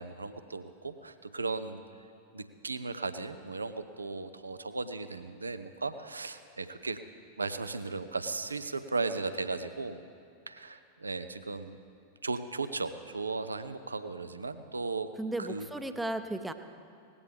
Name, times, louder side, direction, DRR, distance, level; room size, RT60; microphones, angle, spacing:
voice 1, 0.0-1.8 2.3-7.0 7.4-10.0 10.5-11.8 12.2-15.1 15.5-15.7, right 3 dB, 80° right, 11 dB, 0.6 m, -36 dB
voice 2, 15.2-16.5, right 2 dB, 5° right, 9 dB, 0.7 m, -35 dB
18.5 x 15.0 x 3.5 m, 2.4 s
figure-of-eight pair, 90°, 0 cm